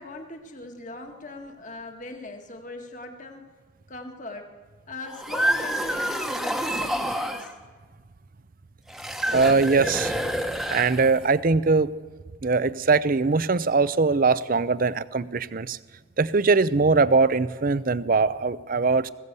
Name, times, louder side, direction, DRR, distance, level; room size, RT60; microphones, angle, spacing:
voice 1, 0.0-3.5 3.9-4.5 4.9-7.5, left 2 dB, 40° left, 4 dB, 1.8 m, -40 dB
sound 1, 5.1-7.5 8.9-11.3, equal, ahead, 1.1 m, -28 dB
voice 2, 9.3-10.1 10.7-11.9 12.4-15.8 16.2-19.1, right 4 dB, 40° right, 16 dB, 0.5 m, -21 dB
20.5 x 15.5 x 8.2 m, 1.4 s
head